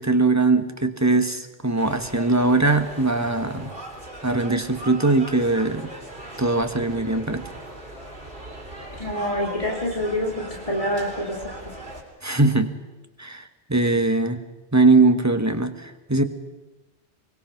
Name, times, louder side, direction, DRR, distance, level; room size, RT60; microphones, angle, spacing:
voice 1, 0.0-3.7 4.2-5.9 6.4-7.4 12.2-12.7 13.2-13.4 13.7-14.4 14.7-16.2, right 3 dB, 15° right, 8 dB, 1.4 m, -21 dB
sound 1, 1.8-12.0, right 1 dB, 65° right, 4.2 m, -39 dB
voice 2, 9.0-11.7, equal, 35° left, 0 dB, 2.8 m, -27 dB
23.5 x 21.5 x 5.9 m, 1.1 s
omnidirectional pair, 1.0 m